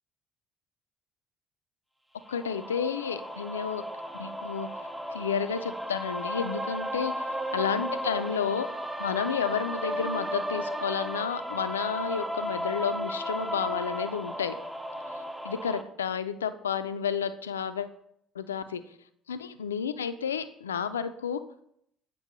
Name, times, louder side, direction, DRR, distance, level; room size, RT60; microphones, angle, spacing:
voice 1, 2.3-3.8 4.2-4.7 5.1-8.7 9.0-14.6 15.1-17.9 18.3-18.8 19.3-21.4, left 7 dB, 85° left, 12 dB, 0.3 m, -31 dB
sound 1, 2.3-15.8, equal, 5° right, 0.6 m, -34 dB
8.2 x 4.4 x 3.0 m, 0.72 s
figure-of-eight pair, 55°, 0 cm